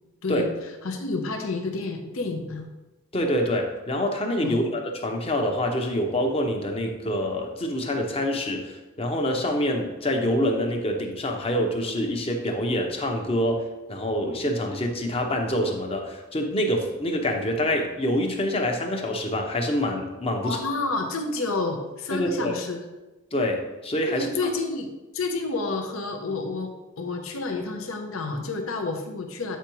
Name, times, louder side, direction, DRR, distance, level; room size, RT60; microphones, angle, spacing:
voice 1, 0.2-0.5 0.8-2.7 4.4-4.6 20.4-22.8 24.1-24.9 25.1-29.6, left 3 dB, 90° left, 4 dB, 0.8 m, -29 dB
voice 2, 3.1-20.6 22.1-22.6 23.3-24.3, equal, 30° left, 3 dB, 0.7 m, -26 dB
8.0 x 4.6 x 3.0 m, 1.1 s
head